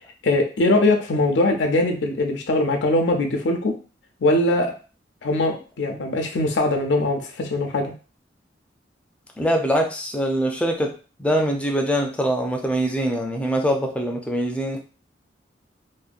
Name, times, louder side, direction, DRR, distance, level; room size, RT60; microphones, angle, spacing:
voice 1, 0.2-3.7 4.2-4.7 5.2-7.9, left 2 dB, 75° left, 4 dB, 0.5 m, -21 dB
voice 2, 9.4-10.9 11.2-14.8, equal, 5° left, 2 dB, 0.4 m, -23 dB
2.7 x 2.2 x 2.4 m, 0.36 s
head